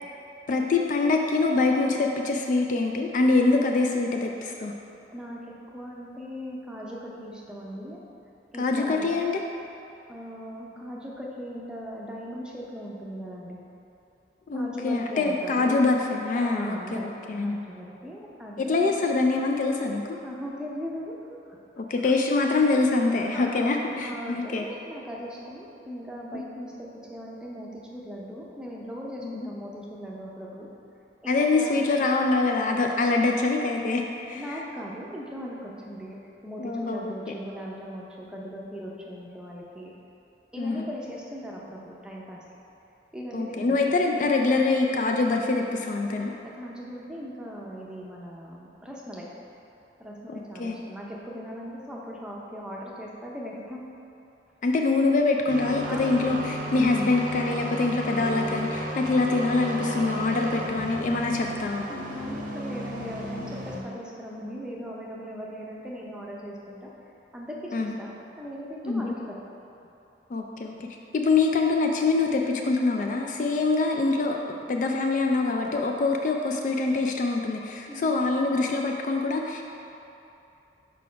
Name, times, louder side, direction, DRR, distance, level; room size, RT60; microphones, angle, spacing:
voice 1, 0.5-4.7 8.6-9.4 14.5-17.6 18.6-20.0 21.8-24.6 26.3-26.4 31.3-34.5 36.6-37.1 40.6-40.9 43.3-46.3 50.6-50.8 54.6-61.9 67.7-68.0 68.8-69.1 70.3-70.9 71.1-74.4 74.7-79.6, left 3 dB, 45° left, 2 dB, 0.3 m, -24 dB
voice 2, 5.7-8.0 8.5-9.1 10.1-13.6 14.5-15.8 16.1-19.0 20.2-21.1 21.5-21.6 22.0-22.1 23.3-30.7 31.2-31.9 34.3-36.2 36.4-39.9 40.5-42.4 43.1-43.8 46.4-49.3 50.0-53.8 55.8-56.2 61.9-69.4 73.3-73.5 77.9-78.1, equal, 5° right, -3 dB, 0.6 m, -39 dB
sound 1, 55.5-63.8, equal, 45° right, 0.7 m, -34 dB
4.6 x 4.2 x 5.6 m, 2.9 s
head